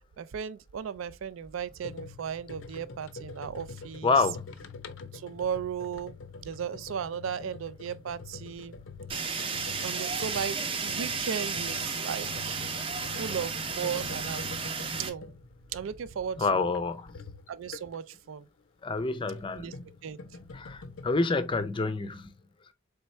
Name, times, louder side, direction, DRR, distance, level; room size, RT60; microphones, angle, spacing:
voice 1, 0.2-4.1 5.1-8.7 9.8-12.8 13.2-14.6 15.0-15.3 15.7-16.6 17.5-18.5 19.5-19.7 20.0-20.2, right 7 dB, 80° right, 0.4 m, -36 dB
sound 1, 1.8-18.2 19.3-21.1, left 4 dB, 75° left, 0.5 m, -45 dB
voice 2, 4.0-4.5 16.4-17.2 18.8-19.7 20.5-22.3, left 3 dB, 25° left, 0.4 m, -28 dB
Fire, 9.1-15.1, right 5 dB, 25° right, 0.5 m, -33 dB
4.3 x 3.4 x 3.1 m
head